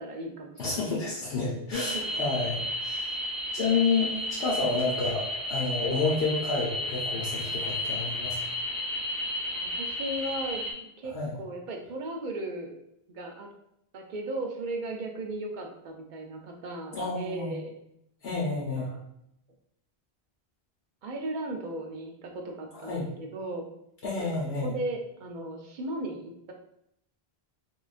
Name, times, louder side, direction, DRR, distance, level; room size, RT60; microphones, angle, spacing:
voice 1, 0.0-1.0 1.9-2.1 9.6-12.7 13.1-13.5 13.9-17.7 18.8-19.0 21.0-23.7 24.2-26.5, right 2 dB, 60° right, 2 dB, 0.6 m, -36 dB
voice 2, 0.6-3.1 3.5-8.4 11.1-11.3 16.9-17.5 18.2-18.9 22.7-23.1 24.0-24.7, left 4 dB, 75° left, -4 dB, 0.9 m, -29 dB
sound 1, 1.7-10.7, left 1 dB, 10° right, 0.4 m, -33 dB
3.1 x 2.3 x 2.4 m, 0.75 s
omnidirectional pair, 1.0 m